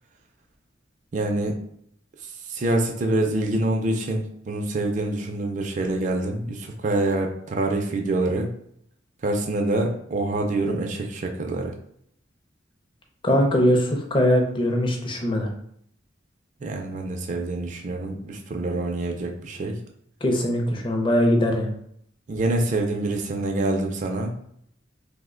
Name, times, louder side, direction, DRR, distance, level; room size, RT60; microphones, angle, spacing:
voice 1, 1.1-1.6 2.5-8.5 9.2-11.7 16.6-19.8 22.3-24.4, right 2 dB, 40° right, 2 dB, 0.4 m, -26 dB
voice 2, 13.2-15.5 20.2-21.7, equal, 25° left, 2 dB, 0.5 m, -21 dB
2.8 x 2.1 x 3.6 m, 0.69 s
head